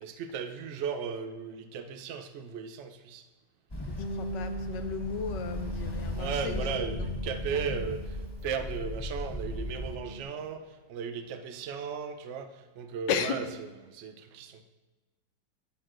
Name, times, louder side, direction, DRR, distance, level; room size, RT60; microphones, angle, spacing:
voice 1, 0.0-3.2 6.1-8.0 8.4-10.6 10.9-13.4 13.8-14.6, right 6 dB, 60° right, 8 dB, 0.8 m, -36 dB
Ocean, 3.7-9.9, left 1 dB, 15° left, 1.3 m, -37 dB
voice 2, 3.9-7.7 13.1-13.5, left 7 dB, 80° left, 9 dB, 1.4 m, -36 dB
Bass guitar, 4.0-8.7 9.0-10.2, right 1 dB, 50° left, 1.0 m, -40 dB
18.0 x 6.2 x 2.6 m, 1.2 s
omnidirectional pair, 1.9 m